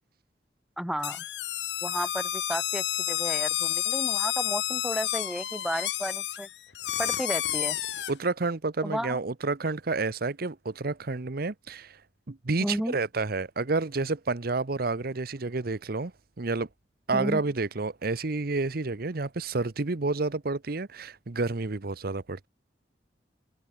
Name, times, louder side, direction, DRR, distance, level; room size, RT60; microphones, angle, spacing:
voice 1, 0.8-1.2 1.8-6.5 7.0-7.8 8.8-9.2 12.6-13.0 17.1-17.4, equal, 5° right, 2.2 m, -33 dB
sound 1, 1.0-8.1, left 12 dB, 85° left, 1.4 m, -30 dB
voice 2, 8.1-12.0 12.3-16.1 16.4-16.7 17.1-22.5, right 3 dB, 60° right, 0.9 m, -30 dB
head